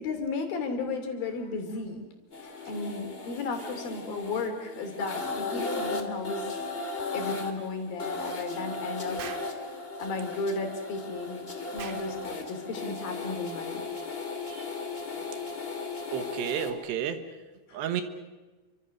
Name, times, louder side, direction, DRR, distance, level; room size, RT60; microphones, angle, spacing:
voice 1, 0.0-2.0 2.4-6.5 6.8-9.4 10.0-13.8 17.7-17.8, left 3 dB, 60° left, 5 dB, 4.4 m, -34 dB
sound 1, 2.3-16.7, left 3 dB, 20° left, 1.7 m, -36 dB
Explosion, 9.2-9.5 11.8-12.1, right 8 dB, 60° right, 2.9 m, -41 dB
voice 2, 16.1-17.2 17.7-18.0, right 9 dB, 90° right, 9 dB, 3.7 m, -31 dB
29.5 x 25.0 x 6.5 m, 1.2 s
omnidirectional pair, 4.8 m